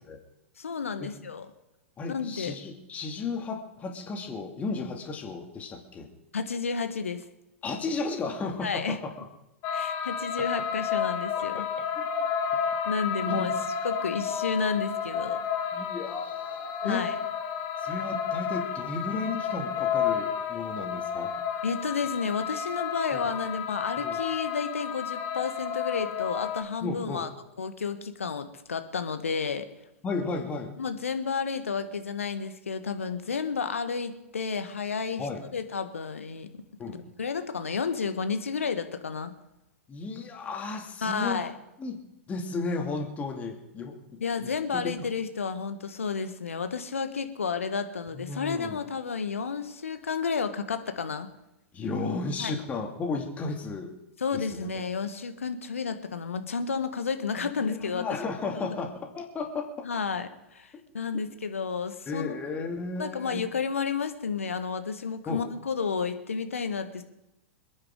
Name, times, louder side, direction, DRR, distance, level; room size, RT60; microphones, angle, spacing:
voice 1, 0.6-1.5 2.1-2.5 6.3-7.2 8.6-9.0 9.7-11.6 12.8-13.5 13.8-15.4 16.8-17.1 21.6-27.3 27.6-29.7 30.8-36.5 36.9-39.3 41.0-41.5 44.2-51.3 52.4-52.5 54.2-58.1 59.8-62.4 63.0-67.0, left 5 dB, 70° left, 8 dB, 1.5 m, -31 dB
voice 2, 2.0-6.1 7.6-9.0 11.5-11.6 12.0-12.1 13.3-13.5 15.7-17.0 17.8-21.3 23.1-23.2 24.0-24.2 26.8-27.2 30.0-30.7 35.2-35.4 36.8-37.0 39.9-41.4 41.8-42.0 42.3-44.0 44.4-44.5 44.8-45.1 48.1-48.8 51.7-53.9 54.3-54.7 57.4-59.7 62.1-63.4 65.3-65.4, left 4 dB, 20° left, 2 dB, 2.4 m, -34 dB
sound 1, 9.6-26.6, left 7 dB, 35° left, 1.8 m, -31 dB
27.0 x 9.8 x 3.8 m, 0.91 s
figure-of-eight pair, 100°, 8 cm